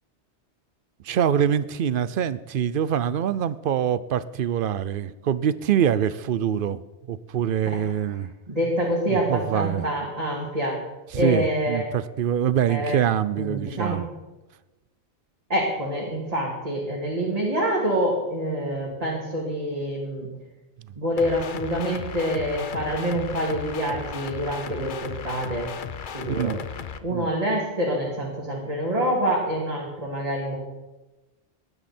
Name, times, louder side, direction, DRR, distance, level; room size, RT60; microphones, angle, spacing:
voice 1, 1.0-6.8 7.1-8.3 9.1-9.9 11.1-14.0 26.3-26.6 27.1-27.3, right 9 dB, 60° right, 16 dB, 0.7 m, -24 dB
voice 2, 8.5-10.8 11.1-11.9 12.7-13.0 13.3-14.0 15.5-20.3 21.0-25.7 26.1-26.5 27.0-30.6, equal, 35° right, -5 dB, 2.6 m, -26 dB
sound 1, 21.2-27.0, left 7 dB, 50° left, 0.8 m, -36 dB
17.5 x 11.0 x 4.4 m, 1.1 s
omnidirectional pair, 1.2 m